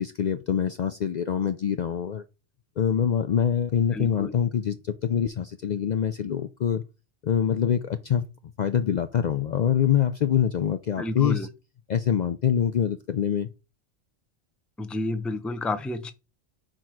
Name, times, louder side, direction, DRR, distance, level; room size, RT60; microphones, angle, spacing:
voice 1, 0.0-2.2 2.8-6.8 7.2-8.3 8.6-11.5 11.9-13.5, left 8 dB, 55° left, 0.5 m, -25 dB
voice 2, 3.9-4.3 11.0-11.5 14.8-16.1, left 2 dB, ahead, 0.5 m, -30 dB
6.0 x 4.5 x 4.7 m
omnidirectional pair, 1.1 m